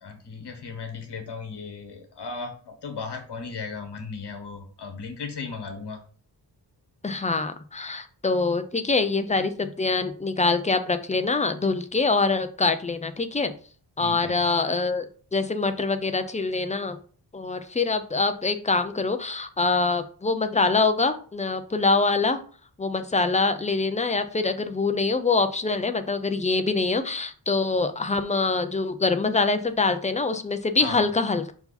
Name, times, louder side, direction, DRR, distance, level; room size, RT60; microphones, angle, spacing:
voice 1, 0.0-6.0 14.0-14.4 30.8-31.0, left 4 dB, 75° left, 5 dB, 1.5 m, -36 dB
voice 2, 7.0-13.5 14.0-17.0 17.3-22.4 22.8-31.5, left 3 dB, 20° left, 8 dB, 0.4 m, -24 dB
5.5 x 4.7 x 4.1 m, 0.43 s
wide cardioid pair, 180°, 41 cm